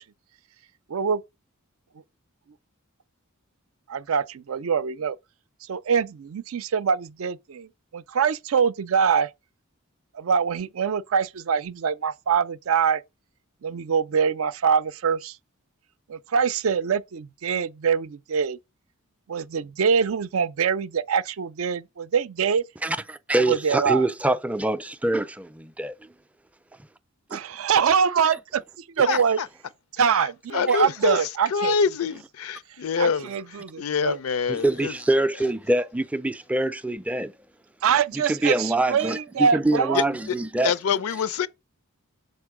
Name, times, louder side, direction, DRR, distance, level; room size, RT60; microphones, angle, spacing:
voice 1, 3.9-5.2 5.7-9.3 10.1-13.0 13.6-15.4 16.1-18.6 19.3-22.6 23.5-24.0 27.3-28.6 29.0-29.4 30.0-31.8 33.0-34.2 37.8-40.0, right 6 dB, 70° right, 0.4 m, -24 dB
voice 2, 22.8-26.1 27.3-27.4 29.1-29.2 34.5-37.3 38.1-40.7, right 1 dB, 5° right, 0.4 m, -25 dB
voice 3, 29.0-29.5 30.0-33.3 33.8-34.9 39.9-40.4 40.6-41.5, left 6 dB, 80° left, 0.5 m, -26 dB
6.7 x 4.4 x 4.8 m
head